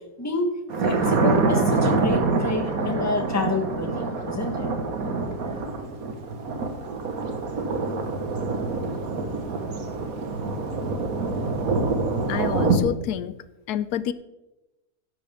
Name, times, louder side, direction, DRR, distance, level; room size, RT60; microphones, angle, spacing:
voice 1, 0.2-0.5 0.8-4.7, left 2 dB, 10° left, 5 dB, 1.0 m, -28 dB
Thunder, 0.7-12.8, right 3 dB, 65° right, 1.7 m, -26 dB
voice 2, 12.3-13.4 13.7-14.1, left 10 dB, 85° left, 15 dB, 1.1 m, -28 dB
13.5 x 10.5 x 3.5 m, 0.99 s
omnidirectional pair, 1.6 m